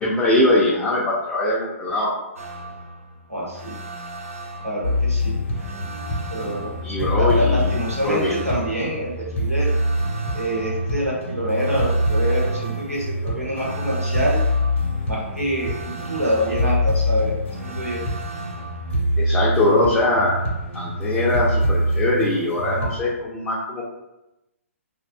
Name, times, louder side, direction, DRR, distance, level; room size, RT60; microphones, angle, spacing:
voice 1, 0.0-2.1 6.8-7.7 8.0-8.5 19.2-20.4 20.7-23.8, left 2 dB, 10° left, -7 dB, 0.3 m, -21 dB
sound 1, 2.4-19.0, right 1 dB, 70° right, 0.5 m, -38 dB
voice 2, 3.3-3.7 4.6-5.3 6.3-6.7 7.0-9.7 10.3-14.4 15.1-17.3 17.6-18.0, equal, 90° right, -5 dB, 0.9 m, -26 dB
sound 2, 4.8-23.0, left 1 dB, 55° left, 0.5 m, -25 dB
2.5 x 2.1 x 2.4 m, 0.94 s
figure-of-eight pair, 125°, 8 cm